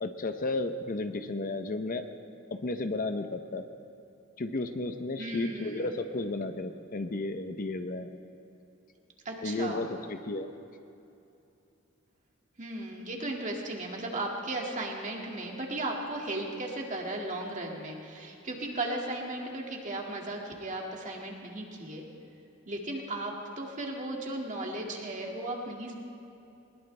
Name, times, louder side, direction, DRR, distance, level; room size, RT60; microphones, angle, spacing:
voice 1, 0.0-2.0 2.5-3.7 4.4-8.2 9.4-10.5, left 2 dB, 45° left, 8 dB, 0.7 m, -33 dB
voice 2, 5.2-5.9 9.3-9.9 12.6-22.1 22.7-25.9, right 2 dB, 40° right, 0 dB, 2.1 m, -36 dB
21.0 x 20.0 x 3.3 m, 2.8 s
head